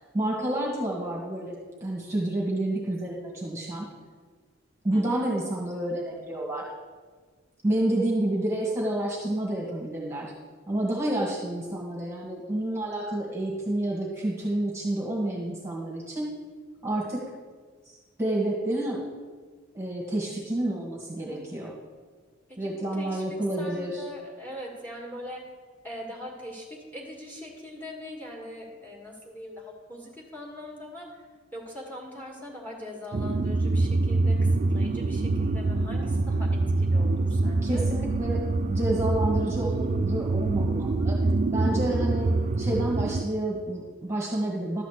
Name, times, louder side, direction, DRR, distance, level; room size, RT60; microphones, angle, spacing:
voice 1, 0.1-1.5 1.8-3.9 4.8-6.6 7.6-10.3 10.7-16.3 16.8-17.2 17.8-19.0 19.7-21.7 22.6-24.0 37.6-38.4 38.7-41.1 41.5-42.3 42.6-44.8, right 1 dB, 15° right, -3 dB, 1.6 m, -29 dB
voice 2, 4.9-5.3 21.2-21.4 22.5-25.4 25.8-31.2 31.5-34.4 34.7-37.9, left 1 dB, 10° left, -2 dB, 1.9 m, -41 dB
sound 1, 33.1-43.2, right 2 dB, 40° right, 0.4 m, -25 dB
12.0 x 4.2 x 8.0 m, 1.5 s
head